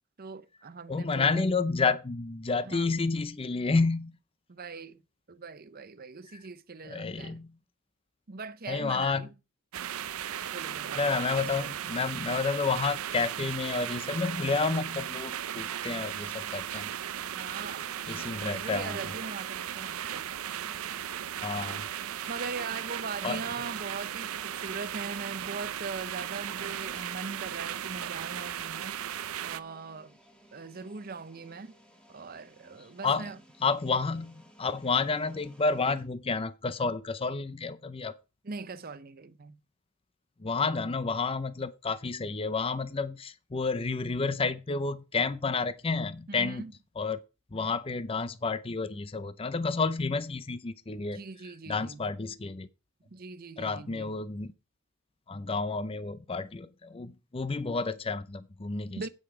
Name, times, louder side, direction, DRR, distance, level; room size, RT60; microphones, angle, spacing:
voice 1, 0.2-1.4 2.5-2.9 4.5-5.0 5.3-7.4 8.3-9.3 10.5-11.2 17.3-17.9 18.4-20.3 22.3-30.2 30.5-31.7 32.1-33.4 38.4-39.6 46.3-46.7 51.1-52.1 53.1-54.1 59.0-59.1, right 4 dB, 45° right, 0.7 m, -41 dB
voice 2, 0.9-4.2 6.8-7.5 8.7-9.3 11.0-16.9 18.1-19.0 21.4-21.8 23.2-23.4 33.0-33.3 33.6-38.1 40.4-46.6 47.0-47.2 47.5-51.2 51.7-52.7 53.6-54.5 55.3-59.1, left 4 dB, 25° left, 0.5 m, -30 dB
sound 1, 9.7-29.6, right 10 dB, 85° right, 0.5 m, -36 dB
sound 2, 17.3-36.0, right 1 dB, 5° left, 1.7 m, -59 dB
8.9 x 7.9 x 4.8 m
head